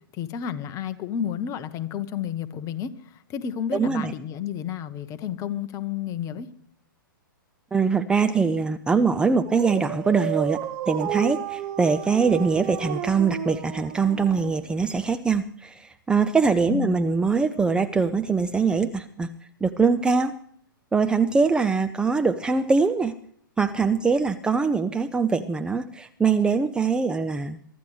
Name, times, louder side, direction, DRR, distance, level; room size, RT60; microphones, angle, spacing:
voice 1, 0.2-2.9 3.3-6.5 16.7-17.1, left 9 dB, 25° left, 12 dB, 1.0 m, -31 dB
voice 2, 3.7-4.1 7.7-10.6 10.9-19.3 19.6-20.4 20.9-23.1 23.6-27.6, right 5 dB, 5° right, 8 dB, 0.5 m, -23 dB
Dog, 9.2-14.9, right 11 dB, 35° right, 1.3 m, -32 dB
23.5 x 13.5 x 3.3 m, 0.66 s
figure-of-eight pair, 110°, 12 cm